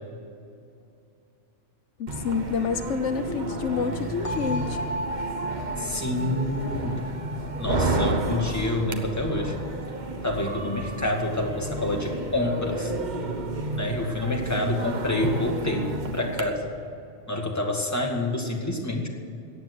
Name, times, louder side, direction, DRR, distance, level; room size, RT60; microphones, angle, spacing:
voice 1, 2.0-4.8, left 6 dB, 85° left, 9 dB, 1.1 m, -28 dB
sound 1, 2.1-16.4, right 2 dB, 40° right, 1.2 m, -31 dB
sound 2, 4.2-10.1, right 1 dB, 30° left, 1.3 m, -36 dB
voice 2, 5.8-7.0 7.6-9.6 10.2-12.9 13.8-16.7 17.3-19.1, left 1 dB, 15° left, 1 dB, 2.0 m, -27 dB
14.5 x 9.1 x 9.4 m, 2.5 s
omnidirectional pair, 1.2 m